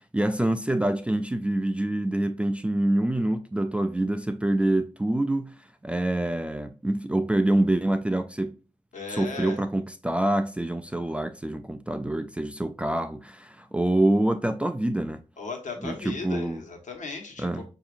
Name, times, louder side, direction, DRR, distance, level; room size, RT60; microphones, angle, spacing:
voice 1, 0.0-5.5 5.8-8.6 9.1-15.2 15.8-16.6 17.4-17.6, right 1 dB, 10° right, 0.3 m, -26 dB
voice 2, 8.9-9.6 15.4-17.6, left 4 dB, 80° left, 1.3 m, -36 dB
5.7 x 2.7 x 2.4 m
wide cardioid pair, 115°, 13 cm